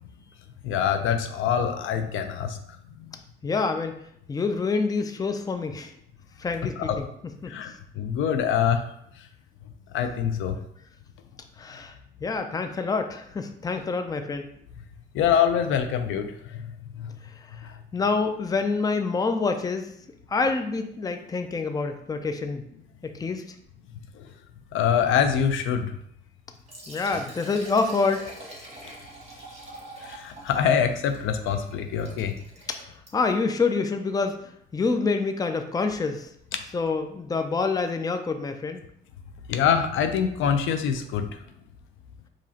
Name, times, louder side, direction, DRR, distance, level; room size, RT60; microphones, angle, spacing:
voice 1, 0.6-2.6 6.8-7.0 7.5-8.9 9.9-10.6 15.1-16.7 16.9-17.1 17.6-17.7 24.2-24.3 24.7-25.9 30.0-32.4 39.5-41.3, left 8 dB, 85° left, 7 dB, 0.5 m, -25 dB
voice 2, 3.4-4.0 4.3-5.9 6.4-7.1 7.4-7.6 11.6-12.0 12.2-14.5 17.5-19.9 20.3-22.6 23.0-23.4 26.9-28.2 32.7-32.8 33.1-34.4 34.7-36.3 36.7-38.8, left 4 dB, 20° left, 7 dB, 0.4 m, -27 dB
Liquid, 26.5-33.4, right 2 dB, 30° right, 1.4 m, -44 dB
4.8 x 3.0 x 2.8 m, 0.70 s
cardioid pair, 90°, 20 cm